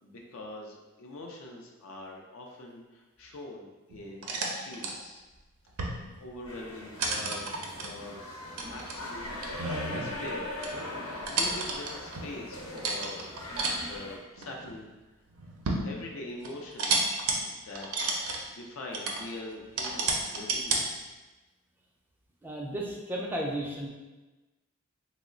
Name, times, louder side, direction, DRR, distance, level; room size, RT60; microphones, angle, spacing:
voice 1, 0.0-5.2 6.2-7.5 7.8-8.2 8.7-9.6 9.9-10.5 11.0-13.2 13.8-14.9 15.8-21.1, left 2 dB, 65° left, 0 dB, 0.4 m, -43 dB
sound 1, 3.9-4.9 5.7-6.1 6.4-6.6 7.0-7.9 8.6-10.4 10.6-10.7 11.1-12.3 12.8-13.7 14.4-14.8 15.3-15.9 16.4-17.4 17.7-18.4 18.9-19.2 19.8-20.8, right 3 dB, 80° right, 0.5 m, -31 dB
sound 2, 6.5-14.2, left 1 dB, 85° left, 0.9 m, -40 dB
voice 2, 22.4-23.9, right 1 dB, 10° right, -2 dB, 0.4 m, -34 dB
3.0 x 2.0 x 3.7 m, 1.1 s
head